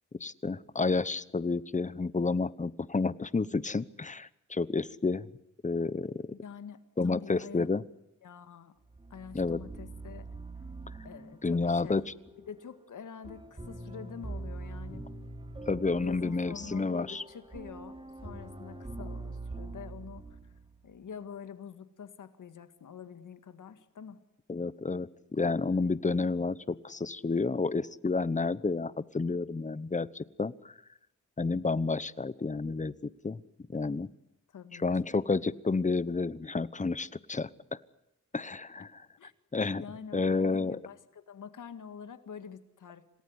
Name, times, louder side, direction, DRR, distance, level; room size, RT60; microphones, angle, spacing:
voice 1, 0.1-5.3 5.6-6.3 7.0-7.8 9.3-9.6 11.4-12.0 15.7-17.2 24.5-30.7 31.4-33.4 33.7-34.1 34.8-37.5 38.3-38.9 39.5-39.8 40.1-40.8, left 3 dB, 25° left, 17 dB, 1.0 m, -30 dB
voice 2, 6.3-7.7 8.2-8.7 9.1-10.3 11.0-12.0 12.5-15.3 16.0-20.5 20.8-24.2 34.5-34.9 39.2-39.3 39.7-43.2, left 7 dB, 85° left, 10 dB, 1.9 m, -46 dB
sound 1, 8.8-20.9, right 2 dB, 15° right, 3.3 m, -44 dB
27.5 x 18.5 x 9.6 m, 0.87 s
wide cardioid pair, 95°, 30 cm